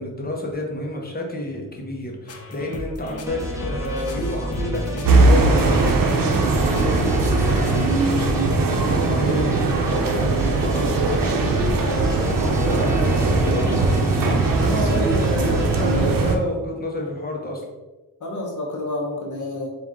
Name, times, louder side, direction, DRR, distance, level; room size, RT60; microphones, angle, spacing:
voice 1, 0.0-14.2 14.6-17.7, left 1 dB, 25° left, -1 dB, 1.0 m, -30 dB
sound 1, 2.3-8.3, left 2 dB, 45° left, 0.6 m, -34 dB
sound 2, 3.3-15.9, equal, 10° right, 0.8 m, -31 dB
sound 3, 5.0-16.4, right 3 dB, 75° right, 0.7 m, -20 dB
voice 2, 9.3-9.6 11.9-12.1 14.7-15.0 18.2-19.7, left 2 dB, 60° left, -1 dB, 1.0 m, -30 dB
4.5 x 2.6 x 3.7 m, 1.1 s
wide cardioid pair, 105°, 34 cm